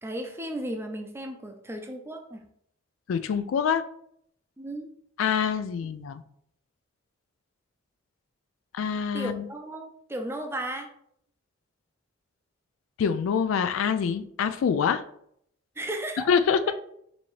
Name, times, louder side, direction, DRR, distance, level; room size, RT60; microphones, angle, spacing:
voice 1, 0.0-2.4 4.6-4.9 9.1-10.9 15.8-16.3 16.6-16.7, right 1 dB, 10° right, 4 dB, 0.5 m, -35 dB
voice 2, 3.1-3.8 5.2-6.2 8.7-9.5 13.0-15.0 16.3-16.6, left 7 dB, 80° left, 11 dB, 0.3 m, -25 dB
5.3 x 2.8 x 3.1 m, 0.70 s
head